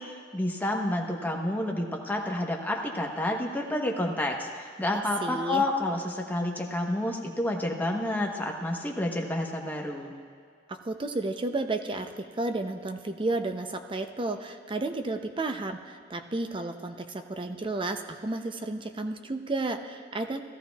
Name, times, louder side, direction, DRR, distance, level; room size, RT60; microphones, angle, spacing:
voice 1, 0.0-10.1, left 1 dB, 10° left, 0 dB, 1.0 m, -29 dB
voice 2, 4.9-5.6 10.7-20.4, right 2 dB, 25° right, 6 dB, 0.6 m, -32 dB
17.0 x 13.0 x 2.3 m, 2.1 s
head